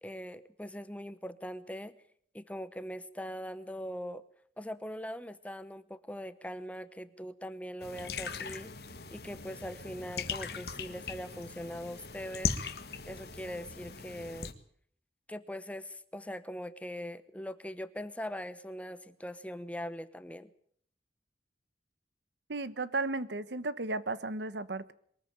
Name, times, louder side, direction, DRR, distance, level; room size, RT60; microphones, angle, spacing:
voice 1, 0.0-2.0 2.3-4.2 4.6-8.7 9.1-12.6 13.1-14.5 15.3-20.5, equal, 10° left, 0.9 m, -41 dB
sound 1, 7.8-14.5, left 5 dB, 65° left, 1.7 m, -39 dB
voice 2, 22.5-24.9, right 3 dB, 80° right, 1.1 m, -34 dB
22.5 x 14.5 x 8.9 m
head